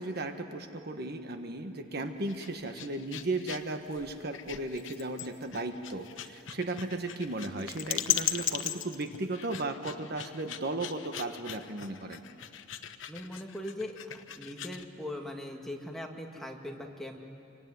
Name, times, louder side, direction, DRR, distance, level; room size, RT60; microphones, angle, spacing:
voice 1, 0.0-12.2, right 2 dB, 55° right, 6 dB, 1.4 m, -35 dB
sound 1, 2.2-14.9, left 10 dB, 85° left, 1.0 m, -38 dB
voice 2, 13.1-14.0 14.3-17.2, left 1 dB, ahead, 1 dB, 2.0 m, -40 dB
26.5 x 24.0 x 9.5 m, 2.7 s
head